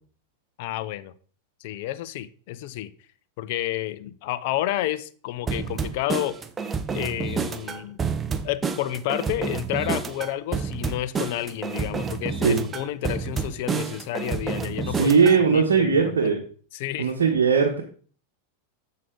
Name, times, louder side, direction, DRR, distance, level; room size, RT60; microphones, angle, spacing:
voice 1, 0.6-1.1 1.6-2.9 3.4-6.4 6.9-8.0 8.4-15.1 15.5-16.4 16.7-17.1, left 14 dB, 60° left, 0.6 m, -30 dB
sound 1, 5.5-15.4, right 5 dB, 20° right, 0.7 m, -29 dB
voice 2, 15.0-16.4 17.0-17.8, right 5 dB, 85° right, 1.1 m, -19 dB
7.5 x 6.3 x 3.8 m
hypercardioid pair, 105°, 0 cm